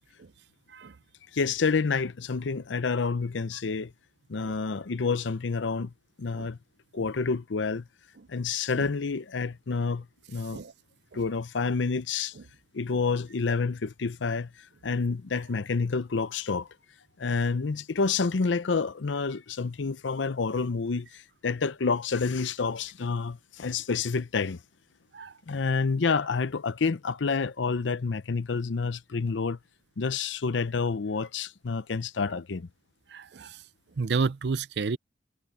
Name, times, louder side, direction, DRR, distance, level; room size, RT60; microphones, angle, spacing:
voice 1, 1.3-3.9 4.3-5.9 6.2-6.6 6.9-7.8 8.3-10.6 11.1-12.3 12.7-14.5 14.8-16.7 17.2-24.6 25.5-29.6 30.0-32.7, left 4 dB, 85° left, 0.6 m, -28 dB
voice 2, 33.1-33.6 34.0-35.0, right 4 dB, 65° right, 0.5 m, -30 dB
head